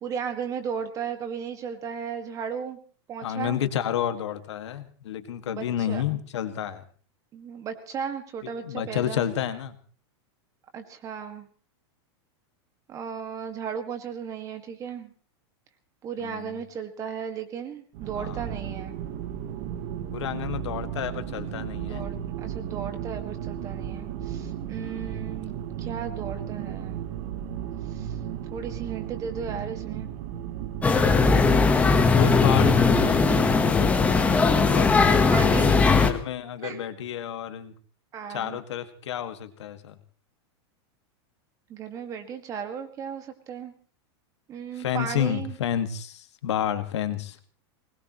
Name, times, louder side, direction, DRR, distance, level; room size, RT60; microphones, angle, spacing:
voice 1, 0.0-2.8 3.1-3.6 5.5-6.0 7.3-9.2 10.7-11.5 12.9-15.1 16.0-18.9 21.8-27.0 27.9-28.1 28.5-30.1 32.5-33.1 35.3-35.7 36.6-36.8 38.1-38.6 41.7-43.7 44.5-45.6, right 7 dB, 25° right, 7 dB, 1.9 m, -35 dB
voice 2, 3.2-6.8 8.6-9.7 16.2-16.6 18.2-18.4 20.1-22.1 24.8-25.1 32.1-34.2 34.7-35.3 36.0-37.7 38.3-40.0 44.8-47.4, left 10 dB, 85° left, 8 dB, 2.0 m, -30 dB
sound 1, 17.9-33.6, right 10 dB, 40° right, 1.4 m, -34 dB
sound 2, 30.8-36.1, left 4 dB, 10° left, 1.2 m, -19 dB
22.0 x 20.0 x 3.1 m, 0.42 s
supercardioid pair, 160°, 14 cm